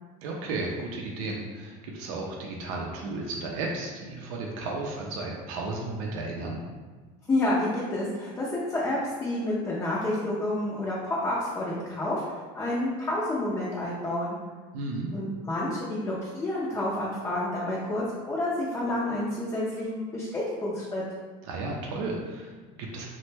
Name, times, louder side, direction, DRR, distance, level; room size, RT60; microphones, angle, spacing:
voice 1, 0.2-6.6 14.7-15.1 21.4-23.1, right 2 dB, 80° right, -1 dB, 0.5 m, -34 dB
voice 2, 7.3-12.2 12.5-14.4 15.1-21.0, left 1 dB, 15° left, -6 dB, 0.4 m, -29 dB
3.0 x 2.1 x 3.2 m, 1.4 s
cardioid pair, 150°, 17 cm